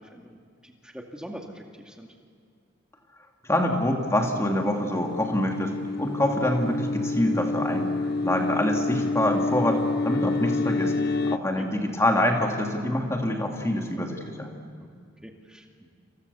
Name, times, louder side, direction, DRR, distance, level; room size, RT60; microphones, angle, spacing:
voice 1, 0.0-2.1 11.6-11.7 14.8-14.9 15.2-15.9, equal, 5° right, 2 dB, 2.3 m, -43 dB
voice 2, 3.5-7.9 8.2-10.9 11.3-14.5, left 1 dB, 15° left, 1 dB, 2.8 m, -25 dB
sound 1, 4.0-11.4, left 3 dB, 50° left, 0.7 m, -28 dB
28.5 x 27.5 x 7.1 m, 2.2 s
head